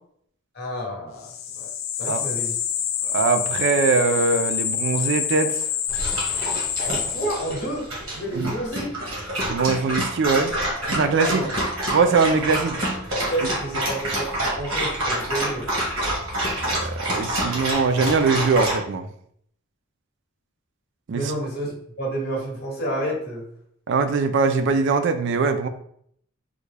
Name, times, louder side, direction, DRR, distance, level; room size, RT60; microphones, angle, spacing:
voice 1, 0.5-1.7 2.0-2.6 6.8-8.9 11.3-11.5 13.2-15.7 21.1-23.4, right 1 dB, 50° left, -2 dB, 1.0 m, -30 dB
sound 1, 1.2-7.8, left 9 dB, 75° left, 0.3 m, -27 dB
voice 2, 3.1-5.7 8.3-8.5 9.5-10.5 10.9-11.5 11.9-12.8 16.6-19.1 21.1-21.3 23.9-25.7, right 4 dB, 60° right, 8 dB, 0.3 m, -22 dB
Dog, 5.9-18.8, right 1 dB, 80° right, 1.3 m, -27 dB
3.6 x 2.2 x 3.3 m, 0.67 s
head